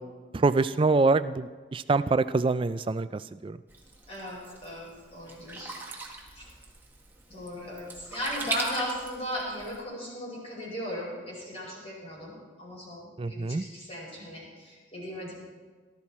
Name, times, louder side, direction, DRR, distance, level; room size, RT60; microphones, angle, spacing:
voice 1, 0.3-3.6 13.2-13.6, right 3 dB, 25° right, 13 dB, 0.3 m, -25 dB
Sink (filling or washing), 3.7-9.8, right 3 dB, 10° right, 1.4 m, -40 dB
voice 2, 4.1-5.8 6.3-6.5 7.3-15.3, equal, 30° left, -4 dB, 5.1 m, -37 dB
18.0 x 12.0 x 4.3 m, 1.4 s
head